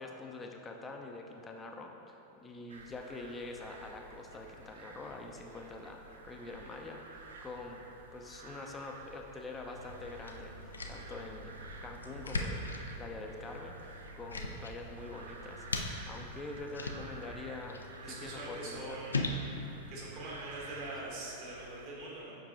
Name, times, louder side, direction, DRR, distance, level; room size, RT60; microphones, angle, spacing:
voice 1, 0.0-7.8 8.1-19.0, left 3 dB, 15° left, 2 dB, 0.6 m, -45 dB
sound 1, 2.7-21.9, right 3 dB, 65° right, 0.4 m, -52 dB
sound 2, 9.7-21.0, left 2 dB, 75° left, 0.4 m, -41 dB
voice 2, 18.0-19.3 19.9-22.4, right 2 dB, 45° right, -5 dB, 1.5 m, -43 dB
6.9 x 5.5 x 2.6 m, 2.9 s
figure-of-eight pair, 90°, 0 cm